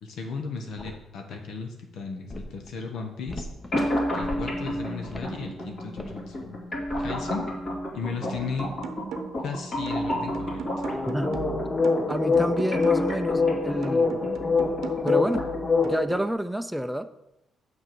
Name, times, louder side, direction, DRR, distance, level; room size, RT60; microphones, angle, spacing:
voice 1, 0.0-3.5 4.1-6.6 7.0-7.5 7.9-8.7 9.4-10.6, left 4 dB, 75° left, 3 dB, 1.1 m, -35 dB
sound 1, 0.8-0.9 2.3-2.4 3.3-3.8 4.2-4.7 5.1-5.3 6.0-6.1 6.9-7.2 10.9-16.0, left 4 dB, 25° left, 0.9 m, -26 dB
sound 2, 3.7-15.7, equal, 45° left, 2.6 m, -32 dB
sound 3, 8.3-9.5 9.9-13.4 13.8-16.3, right 6 dB, 75° right, 0.7 m, -39 dB
voice 2, 11.1-11.4 12.1-14.2 15.0-15.4 15.8-17.1, equal, ahead, 10 dB, 0.4 m, -29 dB
6.5 x 5.5 x 6.2 m, 0.89 s
cardioid pair, 90°, 0 cm